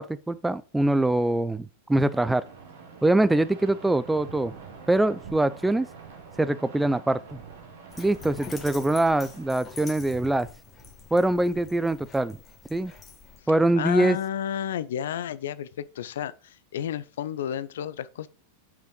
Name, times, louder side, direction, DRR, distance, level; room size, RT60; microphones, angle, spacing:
voice 1, 0.0-2.4 3.0-4.6 4.9-5.9 6.4-7.4 8.0-10.5 11.1-12.4 12.7-12.9 13.5-14.2, right 2 dB, 5° right, 0.3 m, -23 dB
sound 1, 2.0-9.5, right 5 dB, 60° right, 1.9 m, -46 dB
Dog, 7.9-13.4, left 5 dB, 20° left, 1.5 m, -45 dB
voice 2, 13.8-15.7 15.9-18.3, left 10 dB, 60° left, 0.4 m, -31 dB
5.8 x 5.6 x 4.8 m
figure-of-eight pair, 90°, 0 cm